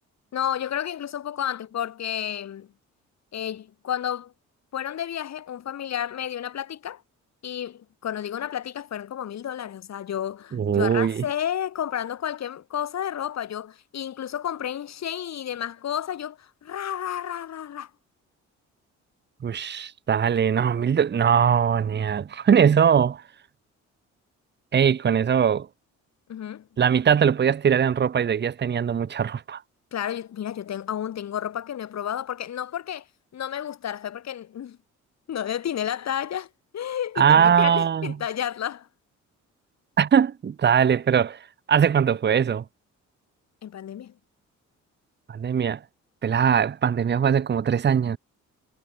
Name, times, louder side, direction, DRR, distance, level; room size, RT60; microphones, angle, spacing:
voice 1, 0.3-2.7 3.3-4.3 4.7-7.0 7.4-17.9 26.3-26.7 29.9-33.0 33.3-34.8 35.3-36.5 36.7-38.9 43.6-44.1, left 10 dB, 60° left, 3.1 m, -31 dB
voice 2, 10.5-11.2 19.4-23.2 24.7-25.7 26.8-29.6 37.2-38.1 40.0-41.4 41.7-42.6 45.3-45.8 46.2-48.2, right 7 dB, 35° right, 1.0 m, -21 dB
cardioid pair, 90°, 30 cm